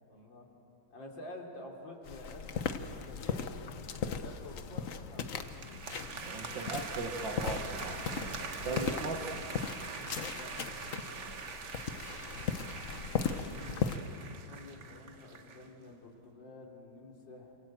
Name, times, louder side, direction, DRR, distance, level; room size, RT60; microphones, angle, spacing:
voice 1, 0.1-0.5 0.9-6.7 8.2-9.0 10.3-10.8 13.0-17.6, left 1 dB, 65° left, 1 dB, 4.0 m, -50 dB
sound 1, 2.0-14.0, left 6 dB, 50° left, 1.2 m, -38 dB
sound 2, 5.4-15.7, right 5 dB, 40° right, 1.4 m, -43 dB
voice 2, 6.2-8.3 8.6-9.2 11.3-11.4, right 3 dB, 65° right, 3 dB, 2.1 m, -39 dB
28.0 x 27.0 x 7.6 m, 2.9 s
omnidirectional pair, 2.2 m